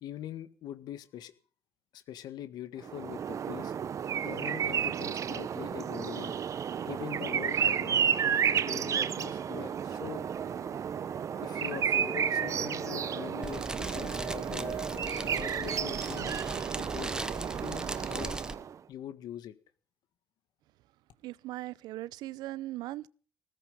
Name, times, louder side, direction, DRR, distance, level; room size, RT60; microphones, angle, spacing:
voice 1, 0.0-1.3 1.9-3.7 4.2-6.4 6.8-8.1 8.5-10.2 11.4-14.8 15.3-16.4 16.8-17.1 17.6-18.4 18.9-19.5, left 11 dB, 75° left, 1.6 m, -43 dB
sound 1, 2.8-18.8, right 8 dB, 50° right, 1.0 m, -32 dB
Wind instrument woodwind instrument, 9.8-13.6 13.9-18.0, left 4 dB, 30° left, 0.9 m, -49 dB
Fire, 13.4-18.5, right 1 dB, 10° right, 1.2 m, -39 dB
voice 2, 21.2-23.1, right 16 dB, 90° right, 0.7 m, -39 dB
16.5 x 14.5 x 5.5 m
cardioid pair, 110°, 7 cm